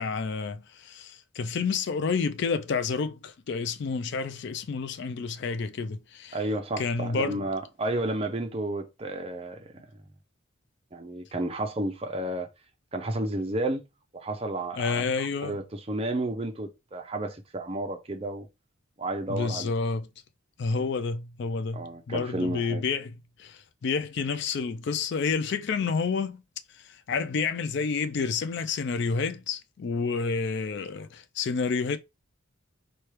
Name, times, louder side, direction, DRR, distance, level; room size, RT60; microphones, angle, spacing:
voice 1, 0.0-6.4 6.8-7.4 14.8-15.6 19.3-20.1 20.6-26.4 26.7-32.0, left 5 dB, 55° left, 0.4 m, -29 dB
voice 2, 6.3-9.7 10.9-12.5 12.9-13.8 14.1-18.5 19.0-19.7 20.8-20.9 21.7-22.8, right 1 dB, 30° right, 0.6 m, -32 dB
4.4 x 2.2 x 3.2 m
head